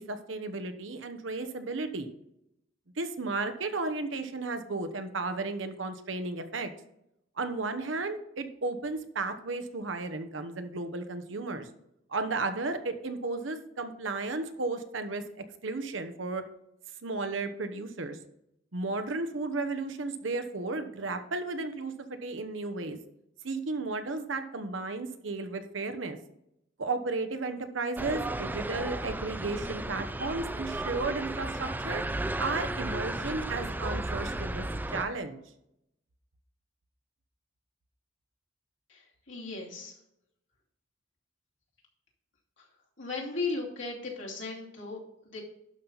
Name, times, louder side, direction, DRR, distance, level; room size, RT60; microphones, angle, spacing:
voice 1, 0.0-2.1 3.0-6.7 7.4-11.7 12.1-16.4 17.0-18.2 18.7-23.0 23.4-26.2 26.8-32.0 32.4-34.7 34.9-35.4, right 3 dB, 70° right, 8 dB, 1.0 m, -34 dB
sound 1, 28.0-35.0, right 1 dB, 10° right, 0.4 m, -34 dB
voice 2, 38.9-40.0 42.6-42.7 43.0-45.4, left 3 dB, 70° left, -2 dB, 2.8 m, -37 dB
11.5 x 5.7 x 4.0 m, 0.80 s
head